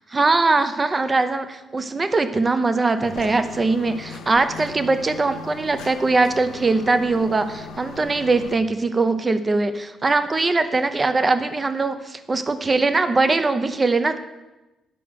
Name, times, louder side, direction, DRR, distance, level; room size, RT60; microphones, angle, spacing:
voice 1, 0.1-14.2, right 3 dB, 25° right, 10 dB, 0.7 m, -21 dB
sound 1, 3.0-8.5, left 6 dB, 85° left, 0.7 m, -39 dB
10.0 x 4.9 x 6.4 m, 1.0 s
cardioid pair, 90°, 0 cm